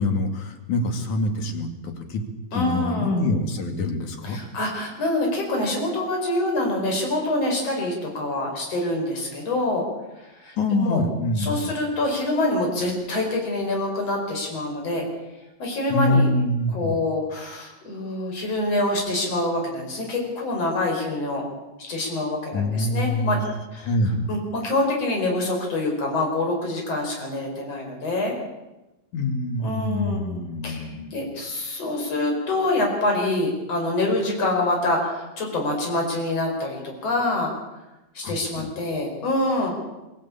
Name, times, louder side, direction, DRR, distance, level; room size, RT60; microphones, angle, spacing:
voice 1, 0.0-2.2 2.5-4.4 10.6-11.5 15.9-16.9 22.5-23.4 23.8-24.3 29.1-31.2 38.2-38.7, left 2 dB, 80° left, 6 dB, 3.8 m, -25 dB
voice 2, 2.5-3.2 4.2-9.8 10.2-11.0 11.4-15.0 15.6-16.3 16.7-21.4 21.9-23.4 23.7-24.0 24.3-28.4 29.6-37.5 38.1-39.8, left 2 dB, 55° left, 1 dB, 6.2 m, -26 dB
23.5 x 15.5 x 8.6 m, 1.0 s
omnidirectional pair, 3.4 m